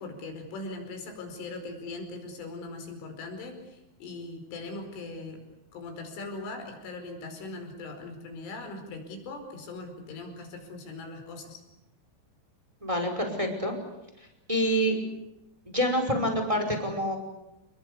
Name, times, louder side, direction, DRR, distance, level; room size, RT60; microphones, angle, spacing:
voice 1, 0.0-5.4 5.7-11.6, left 3 dB, 70° left, 5 dB, 7.3 m, -40 dB
voice 2, 12.8-13.7 14.5-15.0 15.6-17.2, equal, 5° right, 4 dB, 4.9 m, -27 dB
29.5 x 21.5 x 8.4 m, 0.90 s
omnidirectional pair, 5.8 m